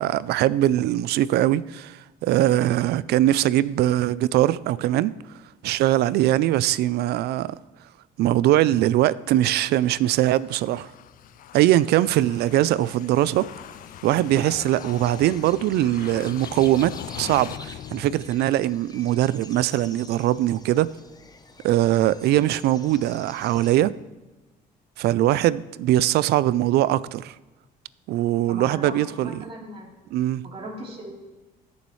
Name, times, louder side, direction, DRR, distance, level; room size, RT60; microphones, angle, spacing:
voice 1, 0.0-5.1 5.6-7.6 8.2-10.9 11.5-13.5 14.0-20.9 21.6-23.9 25.0-27.3 28.1-29.4 30.1-30.4, right 14 dB, 70° right, 0.4 m, -21 dB
sound 1, 9.5-18.8, left 12 dB, 55° left, 0.4 m, -41 dB
sound 2, 11.8-23.8, left 4 dB, 25° left, 0.8 m, -48 dB
voice 2, 28.5-29.9 30.4-31.1, right 1 dB, 35° right, 3.5 m, -37 dB
21.0 x 7.1 x 3.2 m
cardioid pair, 110°, 17 cm